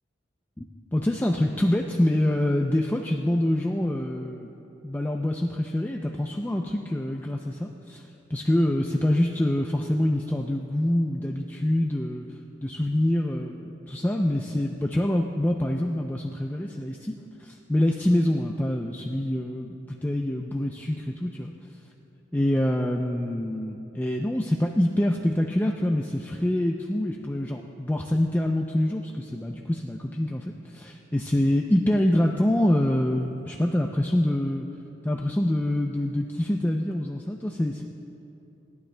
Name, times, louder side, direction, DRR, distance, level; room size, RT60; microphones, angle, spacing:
voice 1, 0.9-4.5 4.8-8.0 8.3-12.3 12.6-21.5 22.3-34.7 35.0-37.8, left 1 dB, 10° left, 1 dB, 0.4 m, -25 dB
29.0 x 12.0 x 2.2 m, 2.9 s
head